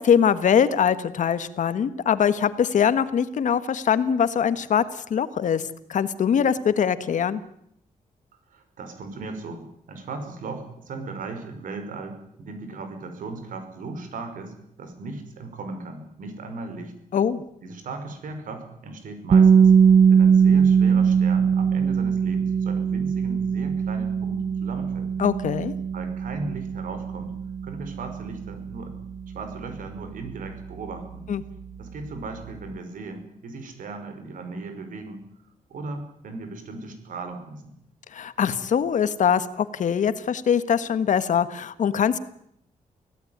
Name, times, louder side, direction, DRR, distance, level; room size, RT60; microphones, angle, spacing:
voice 1, 0.0-4.8 5.1-5.6 5.9-7.4 17.1-17.4 25.2-25.7 31.3-31.4 38.1-42.2, left 8 dB, 70° left, 13 dB, 1.5 m, -22 dB
voice 2, 8.5-16.9 17.6-19.7 20.1-25.1 25.9-27.3 27.6-29.0 29.3-31.3 31.8-35.2 35.7-37.7, right 3 dB, 85° right, 8 dB, 5.4 m, -37 dB
sound 1, 19.3-31.2, right 7 dB, 60° right, 1.0 m, -21 dB
25.0 x 17.0 x 9.6 m, 0.73 s
wide cardioid pair, 140°, 13 cm